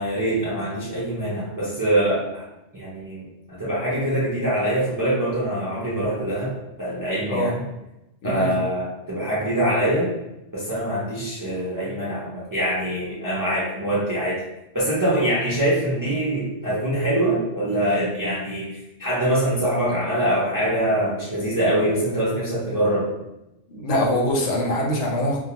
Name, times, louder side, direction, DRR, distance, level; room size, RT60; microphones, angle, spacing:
voice 1, 0.0-2.4 2.7-6.5 6.8-7.6 8.2-10.1 10.5-14.4 14.7-23.1, right 1 dB, 30° right, -8 dB, 0.4 m, -24 dB
voice 2, 8.2-8.5 23.7-25.4, left 1 dB, 75° left, -1 dB, 0.9 m, -23 dB
2.3 x 2.2 x 2.8 m, 0.92 s
omnidirectional pair, 1.3 m